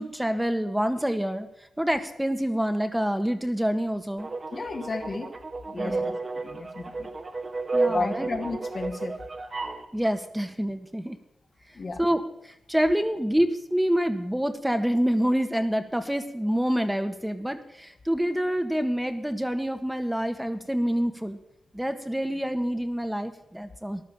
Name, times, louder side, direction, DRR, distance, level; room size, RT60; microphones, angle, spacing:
voice 1, 0.0-1.5 1.8-4.3 5.7-6.1 7.7-8.3 9.9-11.2 12.0-21.4 21.7-24.0, equal, 5° right, 7 dB, 1.5 m, -27 dB
sound 1, 4.2-9.8, right 3 dB, 45° right, 1.7 m, -31 dB
voice 2, 4.5-5.3 5.7-7.1 7.8-9.1 11.7-12.0, left 3 dB, 55° left, 3 dB, 2.3 m, -33 dB
14.5 x 11.0 x 7.1 m, 0.81 s
supercardioid pair, 40°, 0 cm